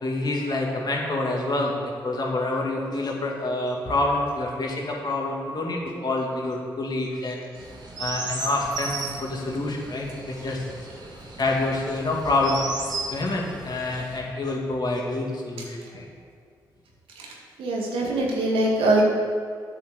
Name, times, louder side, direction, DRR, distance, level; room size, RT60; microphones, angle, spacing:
voice 1, 0.0-1.7 2.0-7.4 8.0-10.7 11.4-12.7 13.1-16.1, left 2 dB, 50° left, -1 dB, 2.4 m, -27 dB
Chirp tweet, 7.5-14.2, right 3 dB, 50° right, 2.1 m, -36 dB
voice 2, 17.6-19.0, right 2 dB, 80° right, -1 dB, 1.9 m, -22 dB
8.5 x 6.4 x 6.7 m, 2.1 s
hypercardioid pair, 45°, 9 cm